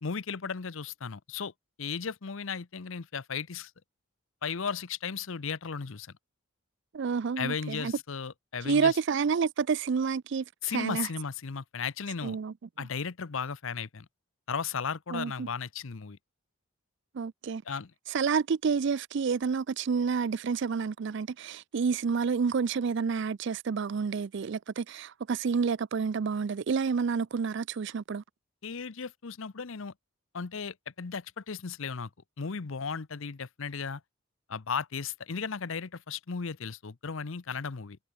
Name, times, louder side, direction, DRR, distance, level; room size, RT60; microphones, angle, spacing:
voice 1, 0.0-1.5 1.8-3.7 4.4-6.1 7.4-9.0 10.6-12.4 12.8-14.1 14.5-16.2 17.7-17.9 28.6-29.9 30.3-32.1 32.4-34.0 34.5-38.0, left 6 dB, 65° left, 0.7 m, -35 dB
voice 2, 6.9-7.9 8.7-10.4 10.7-11.1 12.2-12.5 15.1-15.5 17.1-17.6 18.1-28.2, right 5 dB, 55° right, 0.4 m, -29 dB
head